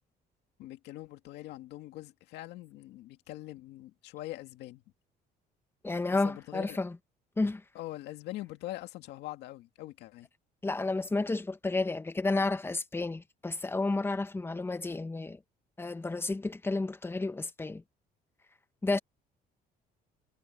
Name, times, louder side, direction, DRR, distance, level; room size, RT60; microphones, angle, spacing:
voice 1, 0.6-4.8 6.0-6.8 7.7-10.3, left 16 dB, 85° left, 2.1 m, -43 dB
voice 2, 5.8-7.0 7.4-7.6 10.6-15.4 15.8-17.8 18.8-19.0, left 3 dB, 15° left, 1.1 m, -31 dB
cardioid pair, 110°, 17 cm